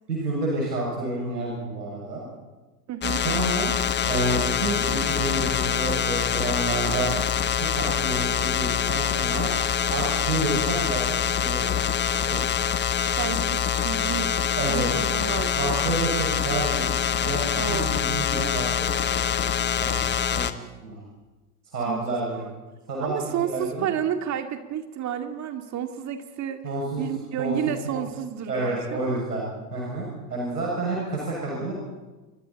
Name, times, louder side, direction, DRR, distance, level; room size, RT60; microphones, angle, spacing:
voice 1, 0.1-2.3 3.2-3.7 4.0-7.1 7.5-9.5 9.9-11.1 11.4-12.4 14.6-14.9 15.5-19.5 19.8-20.0 20.3-20.4 20.8-21.0 21.7-22.4 22.9-23.9 26.6-27.1 27.4-27.6 27.8-28.0 28.5-29.4 29.7-31.7, right 2 dB, 80° right, -3 dB, 7.4 m, -29 dB
voice 2, 2.9-3.2 13.2-14.4 14.6-15.7 17.6-17.9 21.9-22.5 23.0-26.6 27.0-29.2 31.6-31.7, right 9 dB, 35° right, 6 dB, 2.3 m, -31 dB
sound 1, 3.0-20.5, left 8 dB, 25° left, 1.2 m, -25 dB
29.0 x 24.0 x 4.3 m, 1.2 s
figure-of-eight pair, 85°, 47 cm